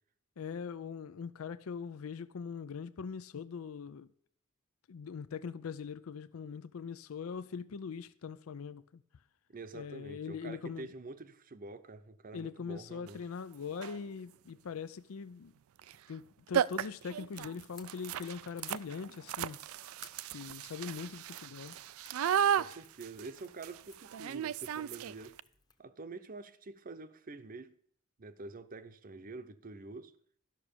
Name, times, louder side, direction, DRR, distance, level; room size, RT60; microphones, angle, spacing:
voice 1, 0.4-4.1 4.9-9.0 9.7-10.9 12.3-15.5 16.1-19.6 20.3-21.8, left 6 dB, 85° left, 0.5 m, -42 dB
voice 2, 9.5-13.2 22.6-25.4 25.8-27.8 28.2-30.1, right 3 dB, 40° right, 0.7 m, -47 dB
sound 1, 13.1-13.2 13.7-14.1 15.8-16.2 16.5-25.4, right 9 dB, 85° right, 0.4 m, -35 dB
Crackle / Crack, 17.7-25.8, left 6 dB, 20° left, 0.9 m, -59 dB
12.5 x 6.1 x 6.7 m
head